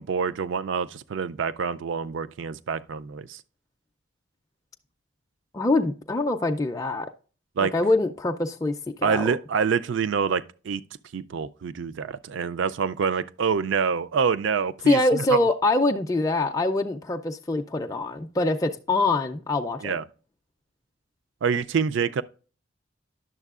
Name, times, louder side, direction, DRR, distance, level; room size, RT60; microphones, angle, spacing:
voice 1, 0.0-3.4 7.6-7.7 9.0-10.8 11.1-15.4 19.8-20.0 21.4-22.2, right 6 dB, 70° right, 0.4 m, -26 dB
voice 2, 5.5-7.1 7.6-9.2 14.9-20.0, left 2 dB, 15° left, 0.4 m, -24 dB
11.0 x 7.2 x 2.4 m
head